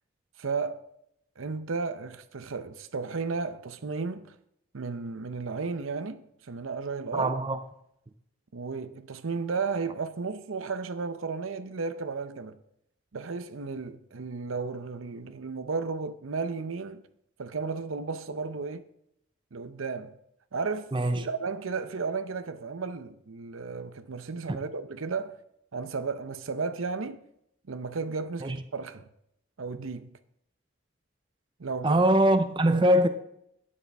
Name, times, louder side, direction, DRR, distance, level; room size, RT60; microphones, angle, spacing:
voice 1, 0.4-0.8 1.4-4.3 4.7-7.3 8.5-12.6 13.1-17.0 17.4-18.9 19.5-20.2 20.5-25.4 25.7-27.2 27.7-29.1 29.6-30.2 31.6-32.0, right 4 dB, 80° right, 0.7 m, -34 dB
voice 2, 7.1-7.6 20.9-21.3 24.5-24.6 28.4-28.6 31.8-33.1, right 1 dB, 25° right, 0.5 m, -22 dB
12.0 x 9.7 x 3.5 m
head